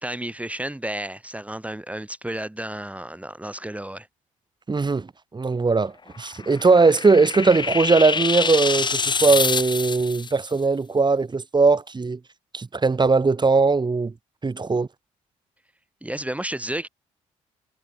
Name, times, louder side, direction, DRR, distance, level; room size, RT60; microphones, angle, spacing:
voice 1, 0.0-4.1 16.0-16.9, right 1 dB, 10° right, 1.6 m, -32 dB
voice 2, 4.7-12.2 12.5-14.1 14.4-14.9, right 4 dB, 30° right, 1.6 m, -20 dB
sound 1, 6.2-10.3, left 5 dB, 30° left, 0.8 m, -26 dB
hypercardioid pair, 55°, 16 cm